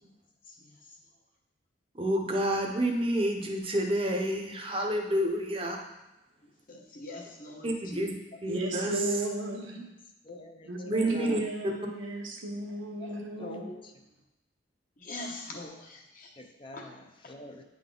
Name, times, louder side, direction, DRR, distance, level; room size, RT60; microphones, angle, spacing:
voice 1, 1.9-5.8 7.6-8.2 8.4-8.9 10.9-11.4, right 1 dB, 30° right, 2 dB, 0.7 m, -29 dB
voice 2, 6.7-8.1 10.3-10.4 10.8-10.9 11.3-11.4 13.0-13.8 15.0-16.3 16.7-16.9, left 2 dB, 45° left, 1 dB, 0.9 m, -42 dB
voice 3, 8.5-9.9 10.7-13.7, right 1 dB, 90° right, -1 dB, 1.2 m, -35 dB
voice 4, 10.4-10.7 11.1-11.4 13.4-13.9 15.6-15.8 16.4-17.6, left 1 dB, 25° left, 4 dB, 0.5 m, -48 dB
9.2 x 3.8 x 3.8 m, 0.94 s
head